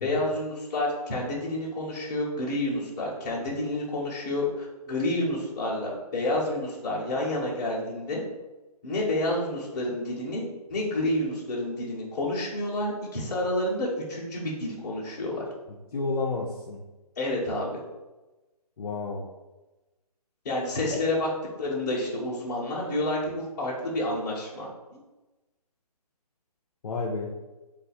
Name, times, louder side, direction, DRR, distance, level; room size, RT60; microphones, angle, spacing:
voice 1, 0.0-8.2 8.8-15.5 17.2-17.8 20.4-21.3 21.6-24.7, left 1 dB, 30° left, -8 dB, 0.9 m, -29 dB
voice 2, 15.9-16.8 18.8-19.3 20.9-21.0 26.8-27.4, left 3 dB, 65° left, -1 dB, 0.5 m, -31 dB
2.6 x 2.4 x 4.2 m, 1.1 s
hypercardioid pair, 160°, 20 cm